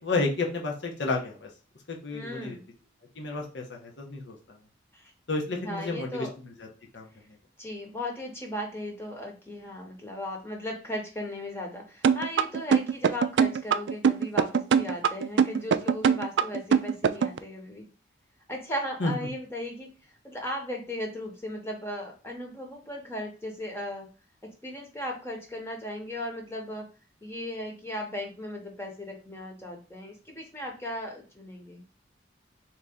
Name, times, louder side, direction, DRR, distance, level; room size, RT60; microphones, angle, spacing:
voice 1, 0.0-1.5 1.9-2.6 3.2-4.6 5.3-6.7 6.9-7.0 19.0-19.3, left 3 dB, 75° left, 0 dB, 1.0 m, -31 dB
voice 2, 2.1-2.6 4.9-5.1 5.6-6.3 7.6-17.9 18.5-24.1 24.4-26.9 27.2-31.8, left 1 dB, 15° left, 1 dB, 0.9 m, -37 dB
sound 1, 12.0-17.4, right 6 dB, 70° right, 0.3 m, -22 dB
4.0 x 3.0 x 3.6 m, 0.35 s
head